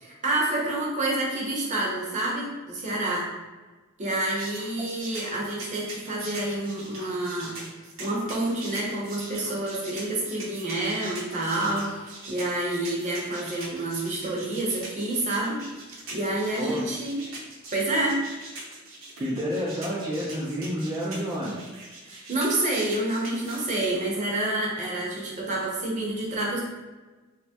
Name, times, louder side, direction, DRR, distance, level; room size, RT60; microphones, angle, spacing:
voice 1, 0.0-3.3 4.0-7.5 8.0-15.6 16.1-17.2 17.7-18.2 22.0-26.6, right 1 dB, 35° right, -4 dB, 0.7 m, -28 dB
sound 1, 4.4-23.9, right 2 dB, 70° right, 0.8 m, -42 dB
voice 2, 19.2-21.6, equal, 20° right, -6 dB, 0.4 m, -29 dB
3.3 x 2.0 x 2.7 m, 1.2 s
head